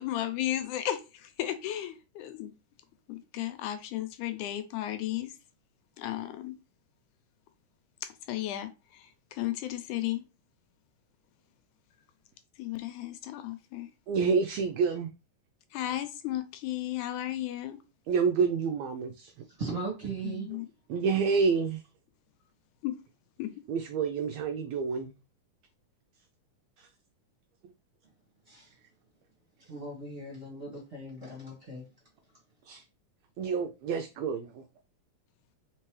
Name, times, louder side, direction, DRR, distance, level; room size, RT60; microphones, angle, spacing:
voice 1, 0.0-2.5 3.1-5.3 6.0-6.6 8.0-10.2 12.6-13.9 15.7-17.8 20.2-20.7 22.8-23.0 23.4-23.5, left 13 dB, 80° left, 2.0 m, -34 dB
voice 2, 14.1-15.1 18.1-19.3 20.9-21.8 23.7-25.1 26.8-26.9 32.6-32.8 33.4-34.6, right 5 dB, 85° right, 1.5 m, -28 dB
voice 3, 19.5-20.5 28.5-28.7 29.6-31.9, right 3 dB, 30° right, 1.2 m, -38 dB
4.4 x 3.7 x 3.1 m
omnidirectional pair, 3.6 m